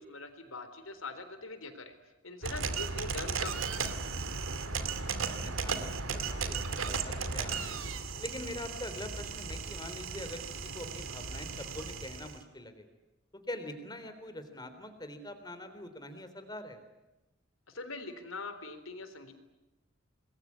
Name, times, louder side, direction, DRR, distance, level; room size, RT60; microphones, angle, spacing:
voice 1, 0.0-1.9 2.2-3.9 17.7-19.3, left 3 dB, 90° left, 10 dB, 3.9 m, -43 dB
sound 1, 2.4-12.4, right 4 dB, 85° right, 2.4 m, -36 dB
voice 2, 4.8-7.8 8.2-10.4 10.7-12.9 13.3-16.8, left 1 dB, 20° left, 9 dB, 3.6 m, -44 dB
26.5 x 21.5 x 9.8 m, 1.0 s
head